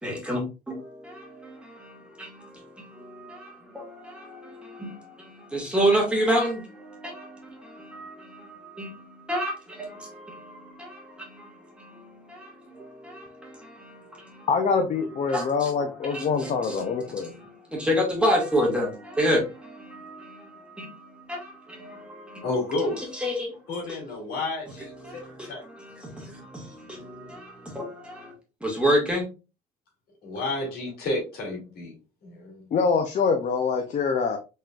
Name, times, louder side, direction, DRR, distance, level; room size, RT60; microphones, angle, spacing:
voice 1, 0.0-14.5 15.3-22.5 23.0-23.6 24.8-28.3 28.6-29.3, equal, 5° right, 1.9 m, -30 dB
voice 2, 14.5-17.3 32.7-34.4, left 5 dB, 45° left, 0.6 m, -24 dB
voice 3, 22.4-23.1 23.7-25.6 25.9-26.0 30.2-31.9 32.2-32.7, left 2 dB, 65° left, 2.4 m, -31 dB
4.2 x 3.7 x 2.4 m
cardioid pair, 110°, 17 cm